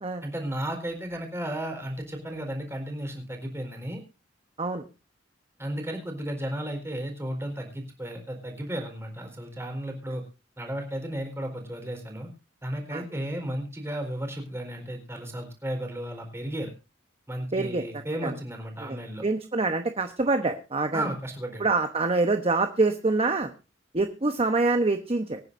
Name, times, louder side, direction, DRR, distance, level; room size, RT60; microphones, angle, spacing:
voice 1, 0.2-4.0 5.6-10.2 10.6-12.3 12.6-16.7 17.3-19.2 20.9-21.7, right 1 dB, 15° right, 4 dB, 4.2 m, -34 dB
voice 2, 17.5-17.8 18.2-18.3 18.8-19.0 19.2-21.1 21.6-23.5 23.9-25.4, right 3 dB, 30° right, 7 dB, 1.0 m, -25 dB
24.5 x 9.8 x 2.6 m, 0.29 s
head